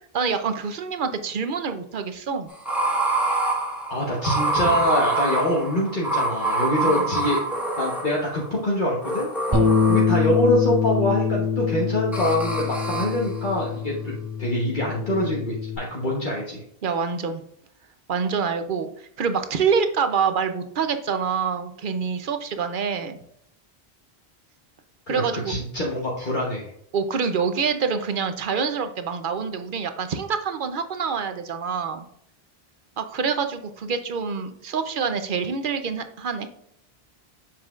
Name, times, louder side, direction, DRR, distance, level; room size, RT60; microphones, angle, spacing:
voice 1, 0.1-2.5 4.6-4.7 6.8-7.1 9.5-9.8 16.8-17.4 18.1-18.9 19.2-23.2 25.1-25.5 26.9-32.1 33.0-36.5, right 6 dB, 55° right, 9 dB, 0.8 m, -26 dB
sound 1, 2.5-8.5 9.0-10.3 12.1-13.3, right 2 dB, ahead, 1.5 m, -26 dB
voice 2, 3.9-7.4 7.8-9.3 9.9-16.6 25.1-26.7, left 1 dB, 50° left, -3 dB, 1.3 m, -25 dB
Bass guitar, 9.5-15.8, left 6 dB, 20° right, 2.7 m, -24 dB
7.3 x 5.8 x 2.4 m, 0.71 s
omnidirectional pair, 1.1 m